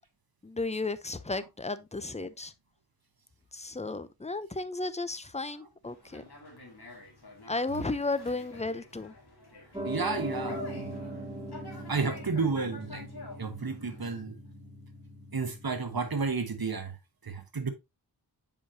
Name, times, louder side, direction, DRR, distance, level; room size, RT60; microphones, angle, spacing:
voice 1, 0.4-2.5 3.5-6.2 7.5-9.1, left 3 dB, 15° left, 0.6 m, -34 dB
Conversation, 5.8-14.2, left 2 dB, 65° left, 2.4 m, -48 dB
Piano, 9.7-16.3, equal, 10° right, 2.2 m, -40 dB
voice 2, 9.8-11.0 11.7-13.1 13.4-14.4 15.3-17.0 17.2-17.7, right 4 dB, 60° right, 1.2 m, -32 dB
7.2 x 5.2 x 2.7 m
wide cardioid pair, 55°, 42 cm